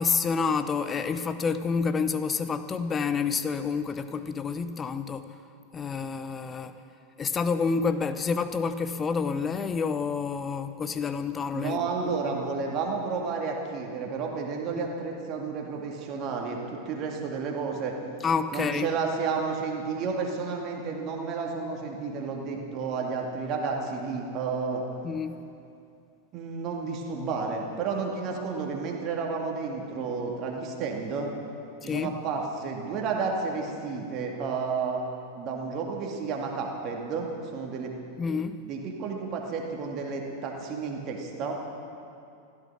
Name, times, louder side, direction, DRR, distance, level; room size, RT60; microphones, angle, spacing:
voice 1, 0.0-5.3 5.7-6.8 7.2-12.4 14.7-14.9 18.2-18.9 25.0-25.4 31.8-32.1 38.2-38.6, left 5 dB, 20° left, 11 dB, 0.7 m, -29 dB
voice 2, 11.5-18.0 18.5-24.8 26.3-31.3 31.8-35.0 35.3-37.9 38.6-41.5, right 5 dB, 35° right, 1 dB, 2.3 m, -31 dB
16.0 x 12.5 x 6.2 m, 2.6 s
figure-of-eight pair, 90°, 0 cm